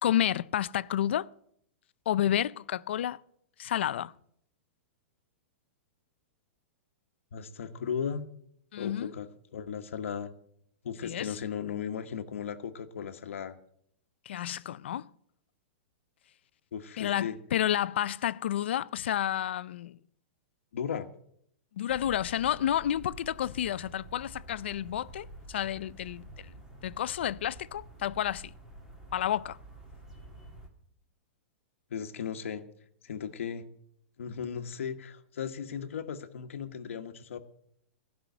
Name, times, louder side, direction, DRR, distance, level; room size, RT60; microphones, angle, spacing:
voice 1, 0.0-1.3 2.1-3.2 3.6-4.1 8.7-9.1 11.0-11.4 14.3-15.1 17.0-20.0 21.8-26.5 26.8-28.5 29.1-29.6, left 11 dB, 60° left, 0.4 m, -30 dB
voice 2, 7.3-8.3 8.8-10.3 10.8-13.6 16.7-17.4 20.7-21.1 31.9-32.6 33.0-33.6 34.2-37.4, left 7 dB, 90° left, 1.2 m, -36 dB
sound 1, 21.9-30.7, right 2 dB, 5° right, 1.5 m, -49 dB
15.5 x 5.6 x 9.3 m
supercardioid pair, 180°, 7 cm